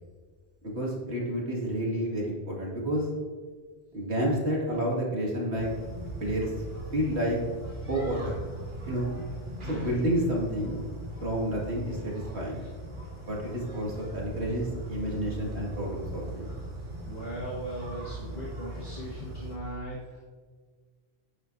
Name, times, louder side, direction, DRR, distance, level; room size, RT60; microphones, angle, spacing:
voice 1, 0.6-3.1 3.9-5.7 6.2-6.5 6.9-7.4 7.9-8.4 8.8-9.1 9.6-10.9 11.2-12.6 13.3-16.5, equal, 75° right, -3 dB, 2.4 m, -30 dB
sound 1, 5.5-19.6, right 1 dB, 50° right, 2.5 m, -40 dB
voice 2, 9.6-9.9 17.0-20.2, right 1 dB, 40° left, -5 dB, 1.7 m, -38 dB
9.7 x 8.8 x 2.6 m, 1.6 s
omnidirectional pair, 1.1 m